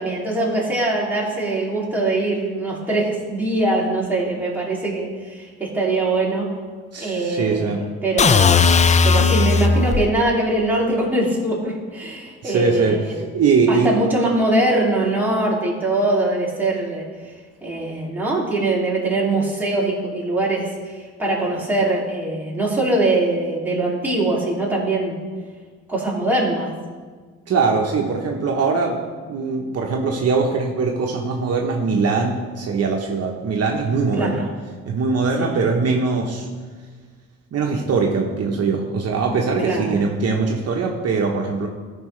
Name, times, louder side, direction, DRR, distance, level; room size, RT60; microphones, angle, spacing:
voice 1, 0.0-6.5 7.0-13.2 13.7-17.3 17.6-25.2 25.9-26.7 34.2-34.5 35.4-35.6 39.6-40.0, right 2 dB, 5° right, -5 dB, 2.6 m, -22 dB
voice 2, 6.9-7.9 12.4-14.0 27.5-29.0 29.3-34.5 34.8-36.5 37.5-41.7, right 4 dB, 55° right, 0 dB, 1.0 m, -21 dB
sound 1, 8.2-10.1, left 5 dB, 25° left, 0.4 m, -16 dB
13.0 x 5.5 x 3.2 m, 1.5 s
cardioid pair, 90°, 30 cm